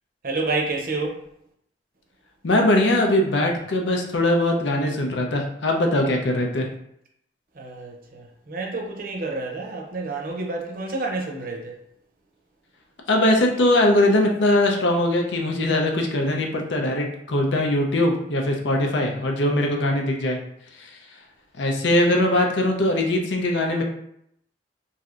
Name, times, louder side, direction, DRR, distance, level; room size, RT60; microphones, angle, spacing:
voice 1, 0.2-1.2 7.6-11.8, right 3 dB, 50° right, 1 dB, 0.6 m, -29 dB
voice 2, 2.4-6.7 13.1-20.4 20.8-20.9 21.6-23.8, left 1 dB, 85° left, 1 dB, 0.6 m, -21 dB
3.1 x 2.6 x 2.4 m, 0.73 s
head